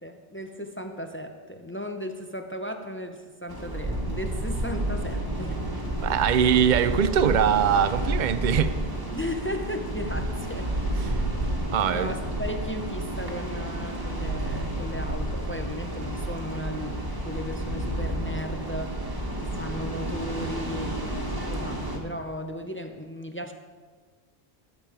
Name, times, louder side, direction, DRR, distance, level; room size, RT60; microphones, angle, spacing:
voice 1, 0.0-5.6 9.1-10.7 11.9-19.0 19.4-23.5, equal, 15° left, 5 dB, 0.4 m, -36 dB
sound 1, 3.5-22.0, right 1 dB, 20° right, 1.5 m, -30 dB
voice 2, 6.0-8.8 11.1-11.2 11.7-12.1, right 8 dB, 55° right, 13 dB, 0.5 m, -22 dB
13.0 x 7.4 x 4.9 m, 1.5 s
omnidirectional pair, 1.2 m